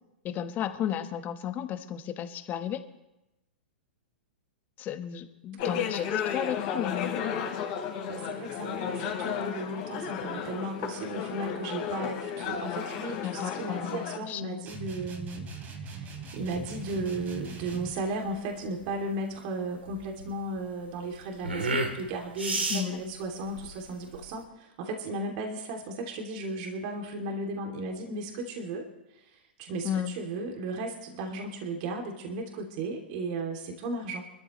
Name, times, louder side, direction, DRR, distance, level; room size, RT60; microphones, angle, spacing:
voice 1, 0.2-2.8 4.8-7.2 13.2-14.6 22.7-23.1 29.8-30.2, left 10 dB, 30° left, 9 dB, 1.3 m, -33 dB
voice 2, 5.5-5.9 8.0-15.5 15.7-28.9 29.1-34.2, right 2 dB, 50° right, 1 dB, 2.8 m, -35 dB
sound 1, 5.6-14.2, left 7 dB, 50° left, 3.9 m, -33 dB
sound 2, 14.7-18.0, right 5 dB, 30° right, 3.3 m, -41 dB
sound 3, 16.4-24.4, right 2 dB, 90° right, 2.2 m, -35 dB
25.0 x 13.5 x 3.2 m, 0.93 s
hypercardioid pair, 110°, 6 cm